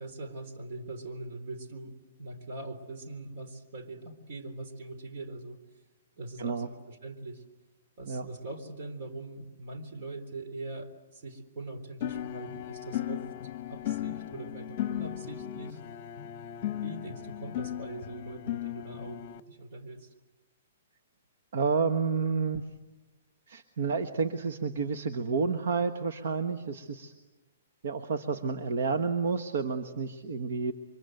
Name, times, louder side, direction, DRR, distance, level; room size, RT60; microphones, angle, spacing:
voice 1, 0.0-5.6 6.2-7.4 8.0-15.8 16.8-20.1, right 2 dB, 45° right, 7 dB, 3.8 m, -42 dB
sound 1, 12.0-19.4, left 12 dB, 35° left, 1.1 m, -36 dB
voice 2, 21.5-22.6 23.5-27.1 27.8-30.7, right 5 dB, 65° right, 9 dB, 1.4 m, -30 dB
29.5 x 25.0 x 7.9 m, 1.1 s
hypercardioid pair, 165°, 0 cm